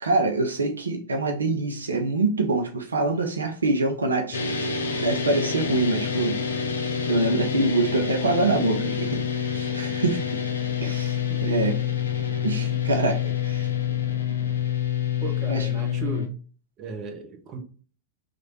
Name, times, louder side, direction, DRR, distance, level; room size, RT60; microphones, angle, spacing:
voice 1, 0.0-6.4 7.1-10.4 10.8-11.8 12.4-13.7 15.5-15.7, right 2 dB, 75° right, 0.5 m, -25 dB
sound 1, 4.3-16.3, left 8 dB, 70° left, 0.5 m, -27 dB
voice 2, 15.2-16.3 16.8-17.6, right 4 dB, 35° right, 0.7 m, -36 dB
3.1 x 2.5 x 4.4 m
figure-of-eight pair, 90°, 0 cm